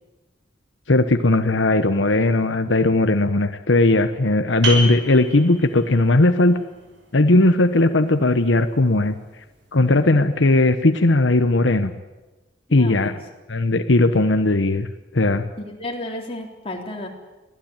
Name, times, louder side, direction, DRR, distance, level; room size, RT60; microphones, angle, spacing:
voice 1, 0.9-6.6 7.1-9.2 9.7-11.9 12.7-13.1 13.5-14.9 15.1-15.5, left 2 dB, 80° left, 8 dB, 1.1 m, -18 dB
sound 1, 4.6-10.0, right 1 dB, 75° right, 6.4 m, -33 dB
voice 2, 12.7-13.1 15.6-17.1, left 1 dB, 30° left, 0 dB, 3.8 m, -32 dB
24.0 x 16.5 x 9.0 m, 1.1 s
head